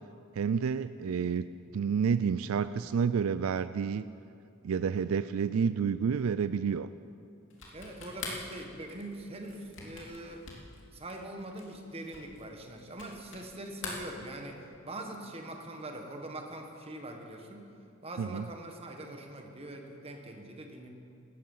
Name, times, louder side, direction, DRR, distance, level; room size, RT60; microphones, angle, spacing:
voice 1, 0.4-1.4 1.7-4.0 4.6-6.9 18.2-18.4, right 6 dB, 75° right, 14 dB, 0.4 m, -29 dB
sound 1, 7.5-13.5 13.8-14.8, left 4 dB, 60° left, 2.9 m, -45 dB
voice 2, 7.7-10.4 10.9-17.7 18.0-20.9, right 1 dB, 30° right, 3 dB, 1.6 m, -43 dB
17.5 x 13.5 x 5.6 m, 2.5 s
head